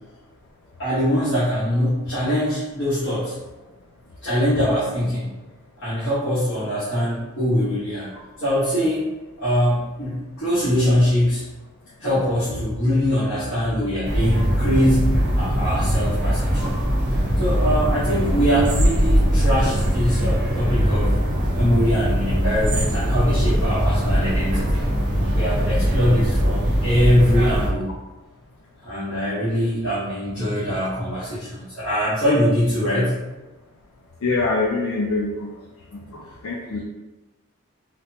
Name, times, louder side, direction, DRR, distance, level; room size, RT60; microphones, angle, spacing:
voice 1, 0.8-3.3 4.2-5.3 5.8-8.1 8.4-9.1 9.4-11.4 12.0-16.7 17.4-21.2 21.5-24.8 25.3-27.9 28.8-33.1, equal, 55° left, -13 dB, 1.2 m, -22 dB
sound 1, 14.0-27.7, equal, 50° right, 0.7 m, -21 dB
voice 2, 34.2-35.5 35.9-36.8, left 3 dB, 80° left, -2 dB, 0.4 m, -25 dB
4.0 x 2.1 x 2.8 m, 1.1 s
head